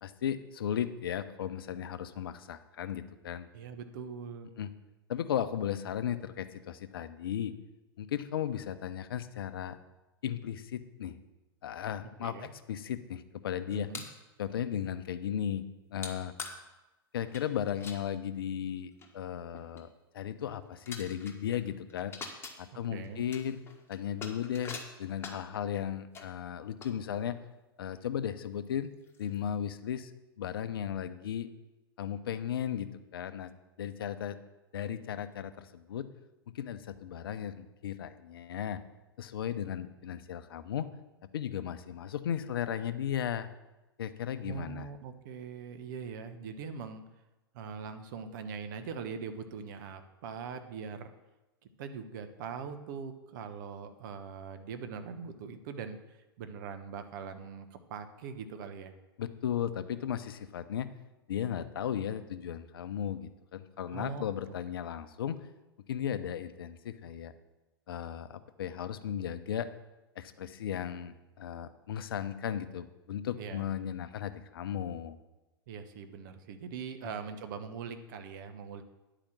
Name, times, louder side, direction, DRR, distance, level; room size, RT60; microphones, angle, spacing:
voice 1, 0.0-3.5 4.6-4.7 5.1-7.5 8.0-9.8 10.2-11.2 11.6-13.9 14.4-15.6 15.9-16.3 17.1-19.9 20.1-22.1 22.6-23.6 23.9-27.4 27.8-28.9 29.2-31.5 32.0-33.5 33.8-34.4 34.7-36.1 36.5-38.8 39.2-40.9 41.3-43.5 44.0-44.9 59.2-60.9 61.3-65.4 65.9-67.3 67.9-69.7 70.2-75.2, left 9 dB, 65° left, 12 dB, 0.7 m, -36 dB
voice 2, 3.5-4.5 12.0-12.5 13.7-14.0 22.7-23.2 44.4-47.0 47.5-51.1 51.8-58.9 63.9-64.2 73.3-73.6 75.7-78.8, right 6 dB, 50° right, 9 dB, 1.0 m, -42 dB
sound 1, 13.7-14.2 16.0-16.1 16.4-16.6 17.2-18.0 18.7-18.8 19.0-19.1 19.5-19.8 20.4-20.5 20.8-21.6 21.9-22.6 23.0-25.6 26.1-26.3 26.8-27.5 27.9-28.0 28.6-28.7 29.0-29.4, left 4 dB, 20° left, 1.3 m, -44 dB
10.0 x 5.0 x 7.3 m, 1.1 s
figure-of-eight pair, 100°, 13 cm